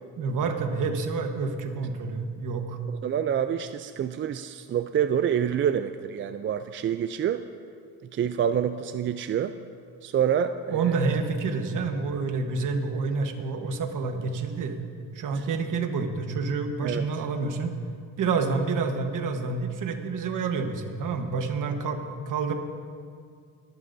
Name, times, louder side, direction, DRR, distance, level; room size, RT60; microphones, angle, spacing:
voice 1, 0.2-2.8 10.7-14.8 15.1-17.7 18.2-22.0 22.3-22.5, right 4 dB, 55° right, 5 dB, 1.3 m, -28 dB
voice 2, 3.0-7.5 8.1-9.5 10.0-11.1 15.4-15.5 16.8-17.1, right 9 dB, 35° right, 9 dB, 0.4 m, -27 dB
23.0 x 11.0 x 2.7 m, 2.2 s
cardioid pair, 115°, 36 cm